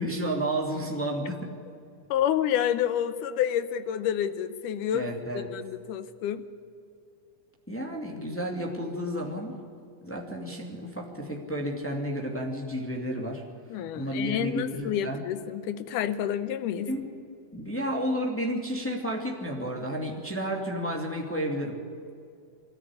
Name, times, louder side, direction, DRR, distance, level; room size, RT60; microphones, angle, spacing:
voice 1, 0.0-1.5 4.9-5.5 7.7-9.5 10.0-13.4 13.9-15.2 16.9-17.1 17.5-21.8, equal, 5° left, -1 dB, 1.8 m, -31 dB
voice 2, 2.1-6.4 13.7-16.9, left 10 dB, 75° left, 13 dB, 2.1 m, -29 dB
24.0 x 13.5 x 9.9 m, 2.4 s
omnidirectional pair, 4.3 m